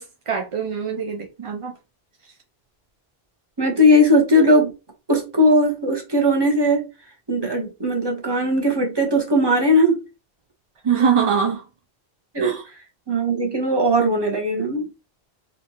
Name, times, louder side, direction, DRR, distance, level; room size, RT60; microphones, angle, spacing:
voice 1, 0.0-1.7 10.8-11.6 12.4-12.6, right 7 dB, 45° right, 0.4 m, -23 dB
voice 2, 3.6-4.7 5.1-6.9 7.3-10.0 12.3-12.6 13.1-14.8, equal, 25° right, 1.1 m, -18 dB
4.2 x 2.6 x 2.9 m
omnidirectional pair, 1.1 m